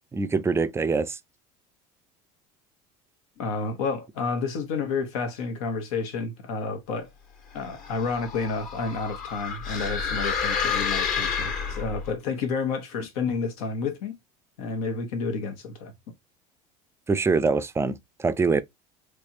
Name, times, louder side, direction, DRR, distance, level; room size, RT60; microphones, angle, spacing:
voice 1, 0.1-1.2 17.1-18.6, right 4 dB, 15° right, 0.4 m, -24 dB
voice 2, 3.4-7.1 7.5-14.2 14.6-15.9, left 4 dB, 85° left, 1.3 m, -30 dB
sound 1, 7.6-12.1, left 6 dB, 50° left, 1.5 m, -29 dB
3.4 x 3.2 x 2.7 m
supercardioid pair, 105°, 18 cm